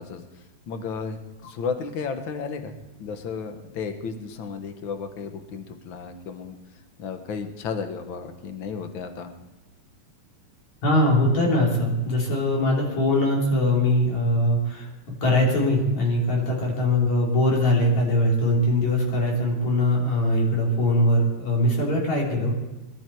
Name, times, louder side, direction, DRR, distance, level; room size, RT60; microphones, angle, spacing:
voice 1, 0.0-2.7 3.0-6.6 7.0-9.3, left 5 dB, 55° left, 7 dB, 1.5 m, -33 dB
voice 2, 10.8-14.9 15.2-22.5, left 1 dB, 70° left, -2 dB, 4.7 m, -21 dB
21.5 x 12.0 x 4.6 m, 1.1 s
omnidirectional pair, 3.3 m